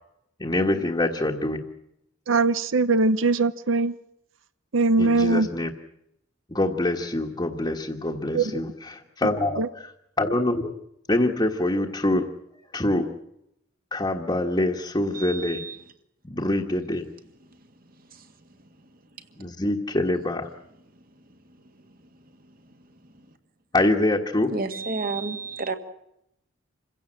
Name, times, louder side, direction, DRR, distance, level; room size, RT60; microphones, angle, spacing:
voice 1, 0.4-1.6 5.0-5.7 6.5-9.6 10.2-10.7 11.1-12.3 12.7-13.1 13.9-15.6 16.3-17.1 19.4-20.5 23.7-24.5, left 1 dB, 25° left, 1.5 m, -25 dB
voice 2, 2.3-3.9 4.7-5.5 8.3-8.6 9.6-9.7, right 3 dB, 85° right, 0.8 m, -21 dB
voice 3, 15.1-15.8 18.1-18.3 24.5-25.7, right 4 dB, 50° right, 1.9 m, -31 dB
27.0 x 16.5 x 7.6 m
head